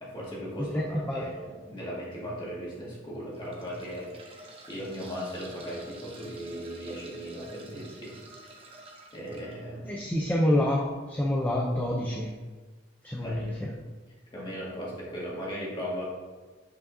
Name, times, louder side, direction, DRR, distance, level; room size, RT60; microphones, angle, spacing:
voice 1, 0.0-0.8 1.1-8.1 9.1-9.9 13.2-13.6 14.3-16.0, equal, 25° left, -6 dB, 1.8 m, -37 dB
voice 2, 0.6-1.3 9.9-12.3 13.0-13.7, left 1 dB, 10° left, -2 dB, 0.5 m, -28 dB
sound 1, 1.2-1.5 2.1-2.2 3.2-9.6 11.1-11.3 11.5-11.6, right 2 dB, 30° right, 0.8 m, -50 dB
7.5 x 5.0 x 2.7 m, 1.3 s
head